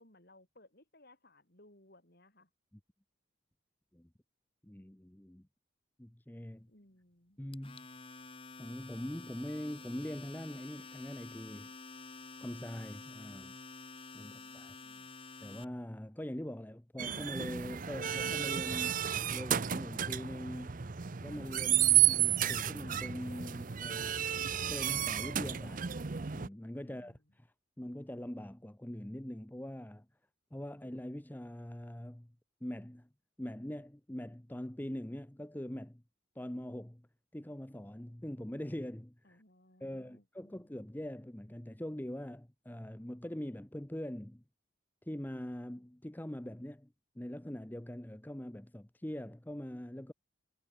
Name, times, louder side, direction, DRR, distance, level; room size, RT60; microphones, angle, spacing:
voice 1, 0.0-2.5 6.7-7.4 26.8-27.2 39.2-40.7, left 1 dB, 50° left, 4.9 m, -63 dB
voice 2, 4.6-5.5 6.0-6.7 7.4-7.9 8.6-11.7 12.4-13.6 14.1-14.7 15.4-20.9 21.2-24.2 24.7-25.9 26.3-27.1 27.8-30.1 30.5-32.3 32.6-33.1 33.4-36.0 36.4-37.1 37.3-39.4 39.8-44.4 45.0-46.9 47.2-50.1, equal, 10° left, 0.7 m, -43 dB
Domestic sounds home sounds, 7.5-15.6, left 3 dB, 25° left, 1.7 m, -50 dB
sound 1, 17.0-26.5, right 11 dB, 40° right, 0.6 m, -32 dB
head